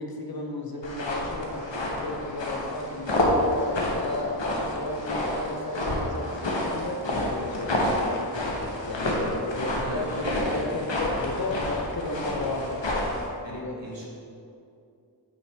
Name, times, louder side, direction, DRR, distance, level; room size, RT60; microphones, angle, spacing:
voice 1, 0.0-7.9 8.8-13.1 13.5-13.8, left 2 dB, 55° left, 1 dB, 0.9 m, -34 dB
sound 1, 0.8-13.3, left 1 dB, 90° left, 1.0 m, -29 dB
voice 2, 9.7-10.4 13.4-14.1, right 1 dB, 80° right, -4 dB, 1.4 m, -39 dB
8.7 x 3.2 x 4.4 m, 2.5 s
wide cardioid pair, 45°, 43 cm